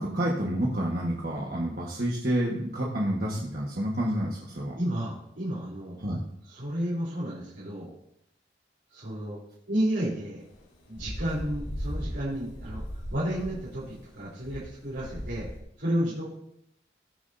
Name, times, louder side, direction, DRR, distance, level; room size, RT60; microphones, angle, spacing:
voice 1, 0.0-4.8 6.0-6.2, right 1 dB, 55° right, -3 dB, 1.5 m, -29 dB
voice 2, 4.8-6.0 6.4-7.9 8.9-9.4 9.7-10.4 10.9-15.5 15.8-16.3, equal, 75° right, -8 dB, 3.7 m, -31 dB
sound 1, 10.5-15.6, equal, 90° left, 2.3 m, -37 dB
19.0 x 7.2 x 2.7 m, 0.77 s
head